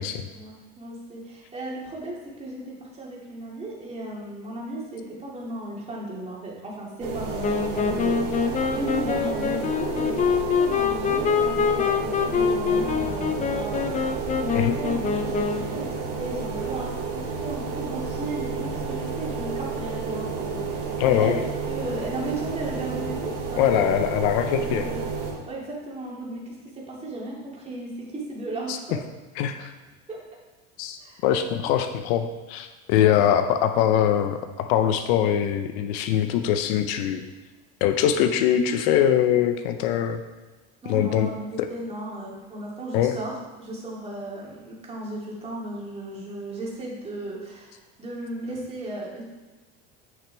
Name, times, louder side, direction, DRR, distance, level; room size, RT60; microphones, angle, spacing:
voice 1, 0.3-8.4 8.7-13.9 14.4-21.4 21.7-24.0 24.4-25.1 25.5-29.0 30.1-30.2 31.0-31.2 31.6-31.7 40.8-43.3 43.6-49.2, right 1 dB, 20° right, -4 dB, 2.3 m, -35 dB
sound 1, 7.0-25.3, right 4 dB, 70° right, 2.4 m, -31 dB
Wind instrument woodwind instrument, 7.4-15.8, left 6 dB, 25° left, 0.5 m, -25 dB
voice 2, 21.0-21.4 23.6-24.9 28.7-29.0 29.4-29.7 30.8-37.2 37.8-40.2 40.9-41.3 41.6-41.7 42.9-43.2, left 10 dB, 75° left, 8 dB, 0.7 m, -22 dB
8.9 x 6.0 x 3.4 m, 1.2 s
supercardioid pair, 125°, 31 cm